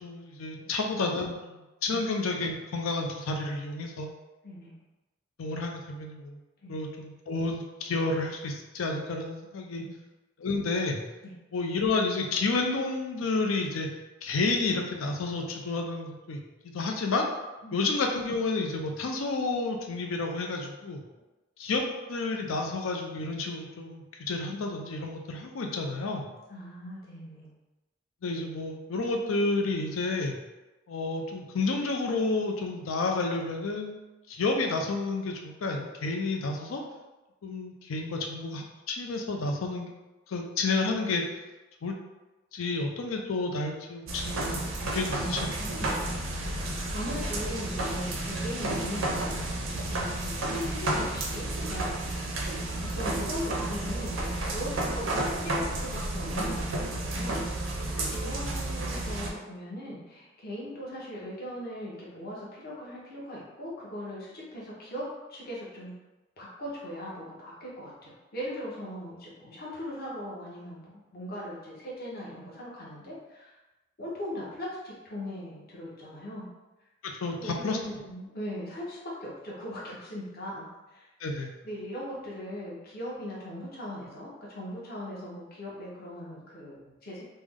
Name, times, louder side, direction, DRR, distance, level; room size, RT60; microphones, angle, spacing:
voice 1, 0.0-4.1 5.4-6.4 6.7-9.8 10.4-11.0 11.5-13.9 14.2-17.3 17.7-21.0 21.6-21.8 22.1-26.3 28.2-30.4 30.9-34.0 34.3-36.8 37.4-39.9 40.3-41.2 41.8-41.9 42.5-45.7 58.0-58.1 77.0-77.8 81.2-81.5, left 3 dB, 85° left, 2 dB, 0.5 m, -30 dB
voice 2, 26.5-27.5 45.2-46.0 46.5-52.3 52.9-54.2 54.4-65.9 66.4-73.6 74.0-76.5 77.4-81.1 81.6-87.2, equal, 50° left, -6 dB, 0.8 m, -39 dB
sound 1, 44.1-59.3, right 1 dB, 70° right, 0.6 m, -31 dB
3.3 x 2.0 x 3.5 m, 1.1 s
head